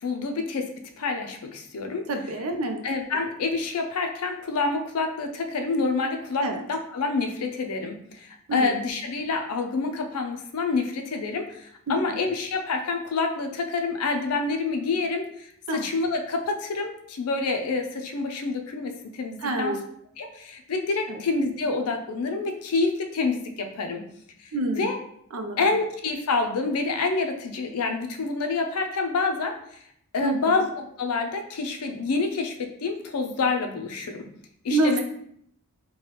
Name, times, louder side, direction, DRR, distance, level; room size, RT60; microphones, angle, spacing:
voice 1, 0.0-2.1 2.8-19.8 20.2-24.0 24.4-25.0 25.6-29.8 30.1-34.3 34.6-35.0, left 3 dB, 85° left, 5 dB, 0.5 m, -27 dB
voice 2, 2.1-2.8 6.4-6.6 8.5-8.8 11.9-12.2 15.7-15.8 19.4-19.8 21.1-21.2 24.5-24.9 25.3-25.7 30.2-30.7 34.7-35.0, right 2 dB, 70° right, 5 dB, 0.5 m, -27 dB
3.2 x 2.2 x 3.0 m, 0.68 s
head